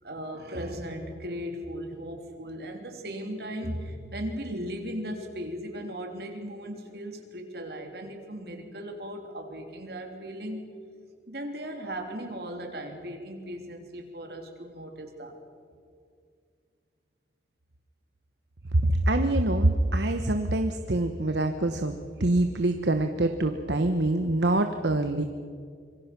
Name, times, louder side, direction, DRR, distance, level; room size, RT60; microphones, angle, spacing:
voice 1, 0.0-10.6 11.3-15.4, equal, 60° right, 3 dB, 3.3 m, -37 dB
voice 2, 18.7-25.2, right 2 dB, 80° right, 7 dB, 1.1 m, -25 dB
26.0 x 23.5 x 6.0 m, 2.2 s
head